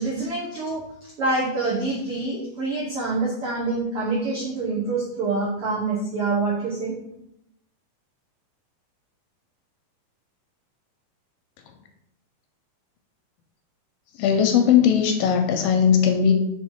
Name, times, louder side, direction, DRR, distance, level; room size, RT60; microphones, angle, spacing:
voice 1, 0.0-6.9, right 3 dB, 75° right, -6 dB, 1.3 m, -26 dB
voice 2, 14.2-16.3, left 8 dB, 80° left, 5 dB, 2.1 m, -18 dB
5.4 x 4.3 x 4.4 m, 0.81 s
omnidirectional pair, 4.3 m